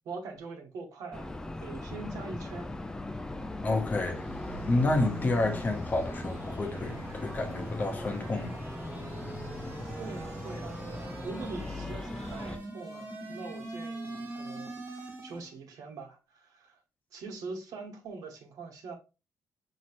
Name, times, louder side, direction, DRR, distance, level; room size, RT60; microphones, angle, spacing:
voice 1, 0.0-1.3 1.6-2.7 10.0-16.8 17.1-19.0, right 4 dB, 80° right, 1.1 m, -43 dB
sound 1, 1.1-12.6, left 2 dB, 10° left, 0.3 m, -39 dB
sound 2, 3.4-15.5, right 2 dB, 35° right, 1.4 m, -42 dB
voice 2, 3.6-4.3 4.6-8.6 9.2-9.4, left 2 dB, 30° left, 0.7 m, -30 dB
5.8 x 3.0 x 2.5 m
cardioid pair, 160°, 6 cm